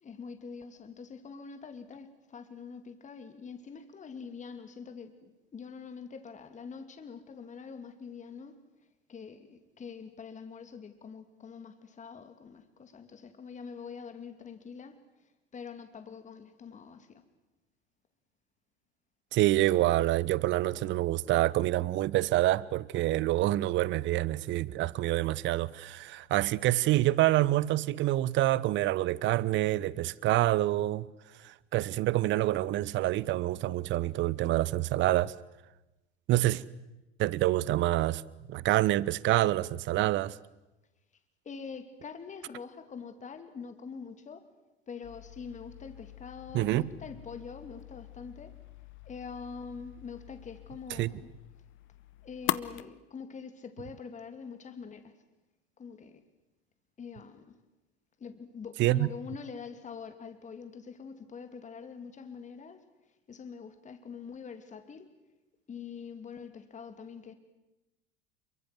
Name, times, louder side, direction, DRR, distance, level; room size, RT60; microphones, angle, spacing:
voice 1, 0.0-8.6 9.1-15.0 15.5-17.2 41.4-44.4 44.9-48.5 49.0-51.3 52.2-55.2 55.8-56.2 57.0-57.5 58.2-62.8 63.3-65.1 65.7-67.3, left 5 dB, 25° left, 2.8 m, -44 dB
voice 2, 19.3-31.1 31.4-35.3 36.3-36.6 37.2-38.2 38.5-40.4 46.5-46.9 51.0-51.1 58.8-59.1, right 16 dB, 40° right, 1.0 m, -27 dB
sound 1, 45.0-52.8, left 16 dB, 40° left, 1.1 m, -42 dB
28.5 x 23.5 x 7.9 m
figure-of-eight pair, 75°, 31 cm